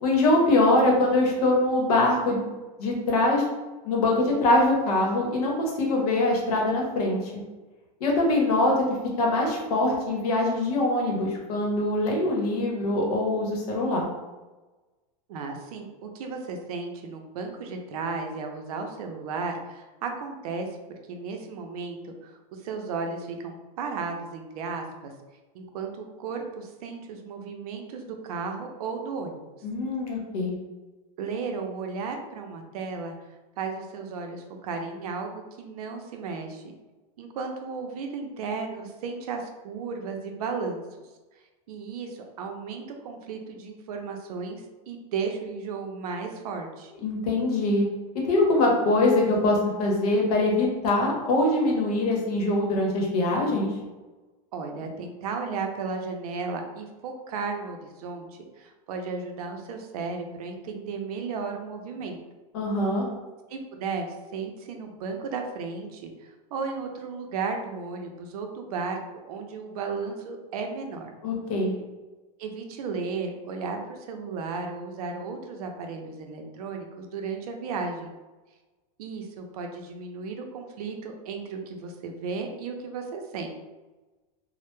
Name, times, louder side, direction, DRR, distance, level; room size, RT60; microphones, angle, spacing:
voice 1, 0.0-2.5 2.8-3.4 3.8-7.2 8.0-8.8 9.2-14.1 29.6-30.5 47.0-47.8 48.3-53.7 62.5-63.0 71.2-71.7, left 2 dB, 85° left, -1 dB, 0.8 m, -23 dB
voice 2, 15.3-20.7 21.1-25.1 25.5-29.4 31.2-33.2 33.6-36.7 37.2-40.8 41.7-46.9 54.5-58.3 58.6-62.2 63.5-64.1 64.3-69.0 69.3-71.1 72.4-78.1 79.0-83.5, right 4 dB, 80° right, 4 dB, 0.5 m, -34 dB
2.1 x 2.0 x 3.0 m, 1.2 s
supercardioid pair, 175°, 19 cm